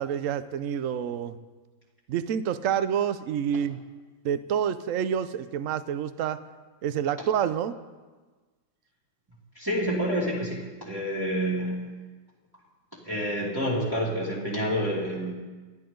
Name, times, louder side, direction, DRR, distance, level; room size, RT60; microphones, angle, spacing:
voice 1, 0.0-1.3 2.1-3.8 4.2-6.4 6.8-7.7, right 9 dB, 60° right, 12 dB, 0.9 m, -28 dB
voice 2, 9.5-11.8 13.0-15.3, equal, 10° right, -7 dB, 2.5 m, -28 dB
28.0 x 10.5 x 3.9 m, 1.3 s
omnidirectional pair, 2.0 m